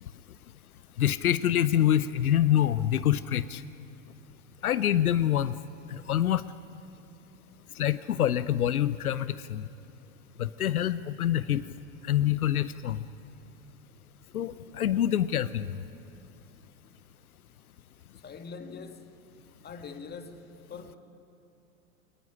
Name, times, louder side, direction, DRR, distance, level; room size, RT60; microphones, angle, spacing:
voice 1, 1.0-3.6 4.6-5.6 5.9-6.4 7.8-9.6 10.4-11.7 12.1-13.0 14.3-15.7, left 11 dB, 85° left, 0.7 m, -26 dB
voice 2, 18.2-19.2 19.6-21.0, left 5 dB, 25° left, 1.9 m, -43 dB
21.5 x 20.0 x 9.9 m
hypercardioid pair, 95°, 42 cm